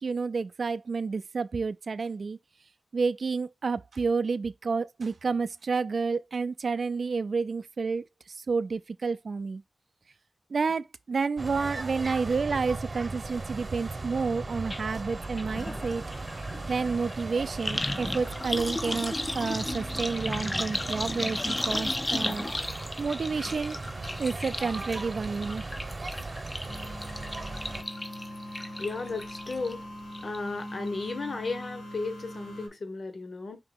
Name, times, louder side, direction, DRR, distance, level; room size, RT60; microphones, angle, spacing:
voice 1, 0.0-2.4 2.9-8.0 8.5-9.6 10.5-16.0 16.7-23.8 24.2-25.6, right 4 dB, 75° right, 0.3 m, -30 dB
sound 1, 11.4-27.8, right 3 dB, 45° right, 0.9 m, -37 dB
sound 2, 14.7-14.8 15.1-29.7 30.1-30.6 30.9-31.0, left 2 dB, 30° left, 0.4 m, -35 dB
sound 3, 26.7-32.7, equal, 80° left, 2.0 m, -41 dB
voice 2, 28.8-29.8 30.2-33.6, left 3 dB, 60° left, 1.1 m, -34 dB
5.2 x 2.9 x 3.6 m
wide cardioid pair, 70°, 0 cm